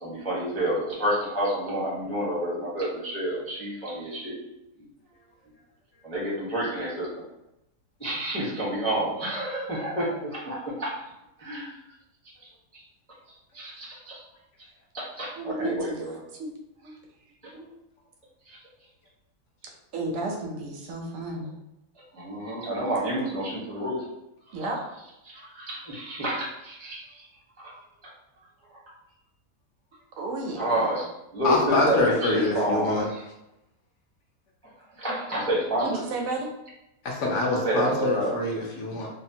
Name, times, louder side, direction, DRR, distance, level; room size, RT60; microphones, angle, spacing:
voice 1, 0.0-4.4 6.0-7.1 8.0-10.2 10.4-10.9 11.4-11.7 13.6-13.9 14.9-15.3 15.6-16.1 22.2-24.0 25.7-27.0 30.6-31.0 31.3-32.9 35.0-35.9 37.6-38.3, right 1 dB, 10° left, -7 dB, 0.4 m, -28 dB
voice 2, 15.3-16.5 16.8-16.9 17.5-17.7 19.9-21.5 22.9-23.1 24.5-24.8 30.2-30.8 35.8-36.5, right 2 dB, 70° right, 0 dB, 0.8 m, -32 dB
voice 3, 31.4-33.1 37.0-39.1, left 2 dB, 70° left, -1 dB, 0.7 m, -25 dB
2.8 x 2.1 x 2.7 m, 0.89 s
omnidirectional pair, 1.7 m